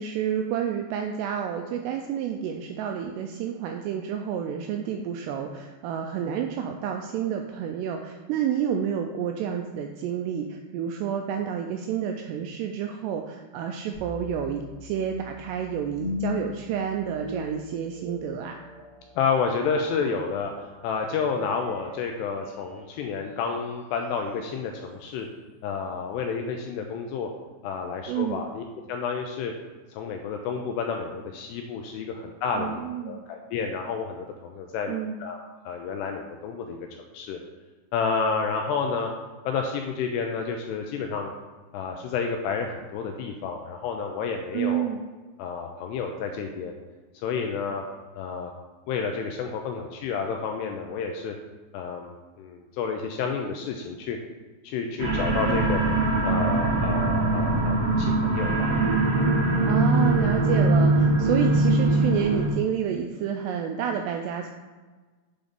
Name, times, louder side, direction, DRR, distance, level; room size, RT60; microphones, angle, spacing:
voice 1, 0.0-18.6 28.1-28.5 32.5-33.2 34.9-35.2 44.5-45.0 59.6-64.5, right 8 dB, 85° right, 4 dB, 2.4 m, -29 dB
sound 1, 13.9-23.0, left 4 dB, 45° right, 2.0 m, -39 dB
voice 2, 19.2-25.3 25.6-27.3 27.6-29.5 29.9-35.4 35.7-36.8 37.1-37.4 37.9-39.1 39.5-41.3 41.7-44.9 45.4-46.7 47.2-47.9 48.2-48.5 48.9-51.4 51.7-52.1 52.4-54.2 54.6-55.8 56.2-58.8, left 5 dB, 85° left, 3 dB, 2.4 m, -30 dB
sound 2, 55.0-62.5, right 2 dB, 65° right, 2.2 m, -22 dB
8.5 x 3.9 x 5.1 m, 1.3 s
omnidirectional pair, 5.3 m